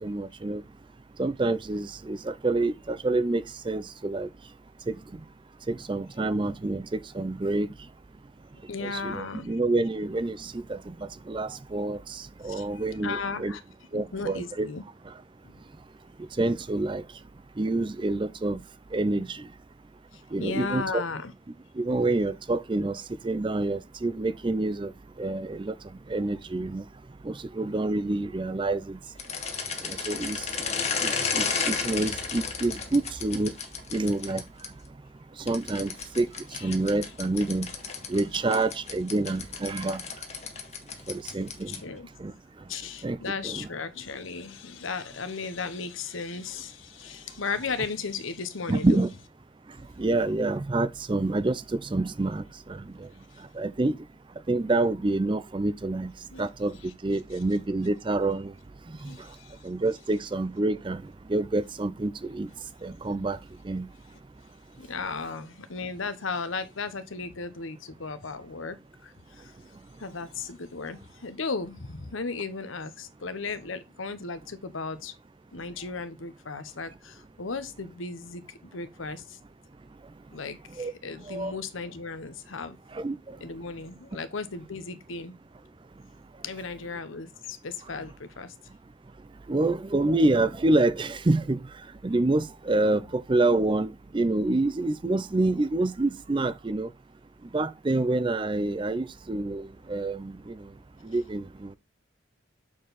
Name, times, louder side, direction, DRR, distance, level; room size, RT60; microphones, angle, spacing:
voice 1, 0.0-0.6 1.2-4.3 4.9-5.0 5.7-7.7 8.8-10.9 11.3-13.6 13.9-14.7 16.4-17.0 17.6-18.6 18.9-19.4 20.3-21.0 21.8-24.9 25.2-25.7 26.1-26.8 27.2-29.0 29.8-30.5 31.0-33.6 33.9-34.4 35.5-36.3 36.6-37.7 38.1-40.0 41.1-41.8 42.2-42.3 43.0-43.2 43.4-43.7 48.7-49.1 50.0-53.1 53.5-54.0 54.5-56.1 56.4-56.8 57.0-58.5 59.0-59.1 59.6-61.0 61.3-62.5 62.8-63.4 63.6-63.9 80.8-80.9 81.3-81.5 82.9-83.2 89.5-91.6 92.0-96.9 97.5-100.6 101.0-101.8, right 2 dB, 25° right, 0.4 m, -27 dB
voice 2, 8.7-9.6 12.4-13.6 13.9-14.8 15.4-15.5 20.1-21.3 30.2-30.3 36.5-36.7 41.3-42.1 42.7-49.1 53.3-53.4 56.3-56.5 59.0-59.6 64.8-68.8 69.0-69.5 70.0-75.1 75.5-79.4 80.3-82.8 83.4-85.4 86.4-88.5, left 4 dB, 80° left, 1.0 m, -36 dB
sound 1, 29.2-34.7 35.5-42.0, left 5 dB, 35° left, 1.2 m, -33 dB
7.4 x 4.6 x 4.0 m
head